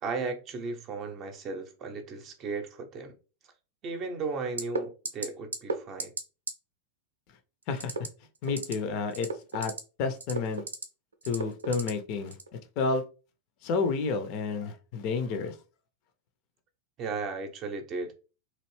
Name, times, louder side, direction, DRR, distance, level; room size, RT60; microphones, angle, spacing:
voice 1, 0.0-3.1 3.8-6.1 17.0-18.1, right 4 dB, 35° right, 0.6 m, -35 dB
sound 1, 4.6-4.8 5.1-5.3 5.5-5.7 6.0-6.2 6.5-6.6 7.8-8.1 8.4-8.7 9.1-9.8 10.2-10.8 11.2-11.9 12.3-12.5, right 4 dB, 70° right, 0.5 m, -32 dB
voice 2, 8.4-9.7 10.0-10.6 11.3-12.4 12.8-13.0 13.6-15.6, left 4 dB, 45° left, 0.5 m, -30 dB
3.0 x 2.6 x 3.1 m
figure-of-eight pair, 90°, 0 cm